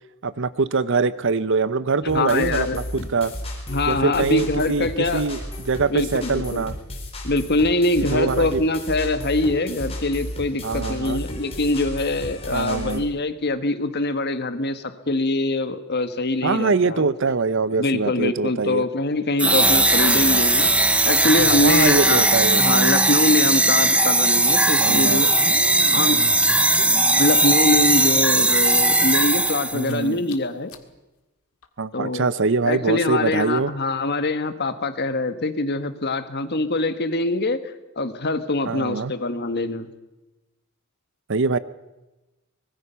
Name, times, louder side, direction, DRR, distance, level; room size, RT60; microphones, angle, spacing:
voice 1, 0.2-2.8 3.1-3.3 3.9-4.9 5.1-6.8 8.0-8.6 10.6-11.2 12.5-13.0 16.4-18.9 20.1-20.3 21.6-22.9 24.8-25.2 29.7-30.2 31.8-33.7 38.7-39.1 41.3-41.6, right 4 dB, 60° right, 16 dB, 0.8 m, -23 dB
voice 2, 2.1-3.1 3.7-5.3 5.9-6.6 7.2-17.1 17.8-20.7 21.0-22.2 22.6-25.3 25.9-26.2 27.2-30.7 31.9-32.3 32.6-39.9, left 2 dB, 50° left, 10 dB, 1.5 m, -23 dB
sound 1, 2.1-13.0, left 1 dB, 30° left, 4.4 m, -34 dB
sound 2, 19.4-29.9, right 2 dB, 5° right, 0.8 m, -18 dB
sound 3, 21.2-22.5 22.7-22.8 23.0-23.1 24.2-24.3 25.1-27.4 28.0-28.1 28.5-28.6 29.0-29.9 30.3-30.4 30.7-30.8 31.6-31.7, left 2 dB, 80° left, 1.9 m, -38 dB
24.0 x 20.5 x 5.7 m, 1.1 s
head